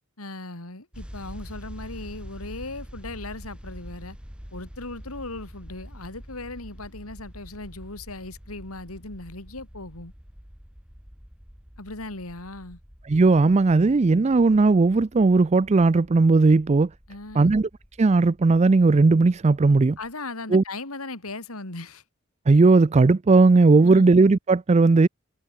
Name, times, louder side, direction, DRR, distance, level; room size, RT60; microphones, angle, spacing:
voice 1, 0.2-4.2 4.5-10.1 11.8-12.8 17.1-17.5 20.0-22.0 23.8-24.1, left 2 dB, 85° left, 3.9 m, -38 dB
sound 1, 0.9-20.1, equal, 5° right, 1.8 m, -45 dB
voice 2, 13.1-16.9 17.3-17.7 18.0-20.0 20.5-20.6 22.5-25.1, right 3 dB, 30° right, 0.4 m, -17 dB
head